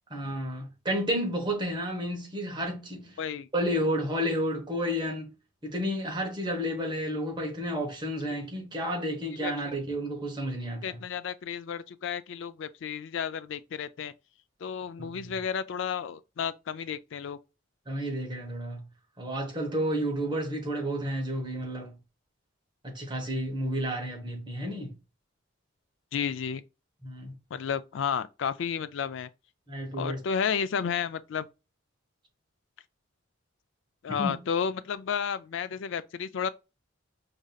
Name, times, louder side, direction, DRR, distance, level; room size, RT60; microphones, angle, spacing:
voice 1, 0.1-3.1 3.5-5.3 5.6-11.0 15.0-15.4 17.9-18.8 19.2-21.9 22.8-25.0 27.0-27.4 29.7-30.2 34.2-34.4, equal, 20° right, 1.0 m, -31 dB
voice 2, 3.2-3.5 9.4-9.5 10.8-14.1 14.6-17.4 26.1-26.6 27.5-29.3 29.9-31.5 34.0-36.5, left 7 dB, 60° left, 0.3 m, -32 dB
5.0 x 2.6 x 2.3 m
head